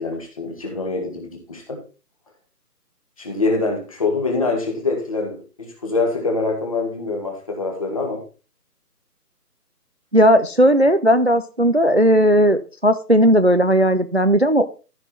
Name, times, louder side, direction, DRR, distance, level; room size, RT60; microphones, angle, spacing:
voice 1, 0.0-1.8 3.2-8.2, left 3 dB, 20° left, 2 dB, 1.8 m, -24 dB
voice 2, 10.1-14.7, equal, 45° right, 12 dB, 0.4 m, -16 dB
14.0 x 5.9 x 4.4 m, 0.34 s
hypercardioid pair, 175°, 48 cm